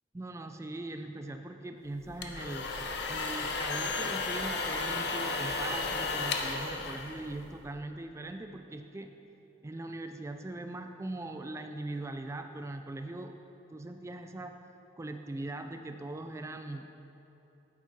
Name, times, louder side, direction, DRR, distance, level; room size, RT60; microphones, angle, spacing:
voice 1, 0.1-2.7 3.1-9.1 9.6-13.4 13.7-14.6 15.0-17.1, right 2 dB, 15° right, 6 dB, 0.3 m, -40 dB
sound 1, 2.0-7.7, left 3 dB, 65° left, 0.7 m, -34 dB
9.3 x 7.2 x 4.5 m, 2.9 s
head